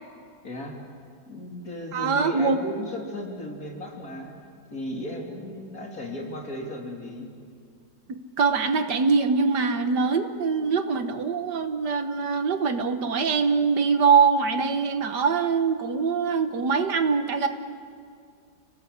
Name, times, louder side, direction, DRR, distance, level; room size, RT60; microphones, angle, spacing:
voice 1, 0.4-0.8 1.3-4.3 4.7-7.3, equal, 50° left, 0 dB, 3.8 m, -35 dB
voice 2, 1.9-2.6 8.1-17.5, right 5 dB, 70° right, 8 dB, 1.8 m, -23 dB
30.0 x 18.5 x 8.0 m, 2.3 s
omnidirectional pair, 1.9 m